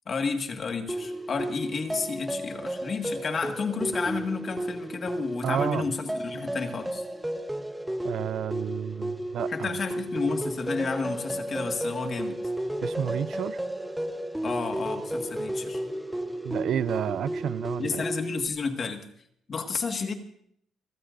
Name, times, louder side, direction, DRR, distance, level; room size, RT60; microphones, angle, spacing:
voice 1, 0.0-7.0 9.5-12.4 14.4-15.8 17.8-19.1 19.5-20.1, left 4 dB, 45° left, 1.8 m, -31 dB
sound 1, 0.9-18.5, right 1 dB, 5° right, 1.0 m, -33 dB
voice 2, 5.4-5.9 8.0-9.8 12.8-13.6 16.4-18.0, right 9 dB, 70° right, 0.5 m, -30 dB
29.5 x 14.5 x 2.6 m
cardioid pair, 90°, 0 cm